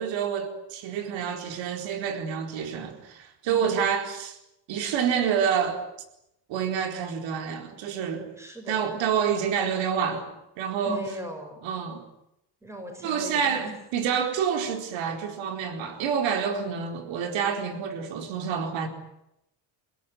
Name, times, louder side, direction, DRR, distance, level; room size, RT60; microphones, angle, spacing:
voice 1, 0.0-4.4 4.7-5.8 6.5-8.3 8.7-11.0 11.6-12.0 13.0-13.7 13.9-18.9, right 7 dB, 90° right, 4.4 m, -28 dB
voice 2, 3.5-3.8 8.4-8.8 10.8-11.6 12.6-13.7, right 1 dB, 5° right, 6.4 m, -39 dB
30.0 x 17.0 x 9.7 m
cardioid pair, 155°, 44 cm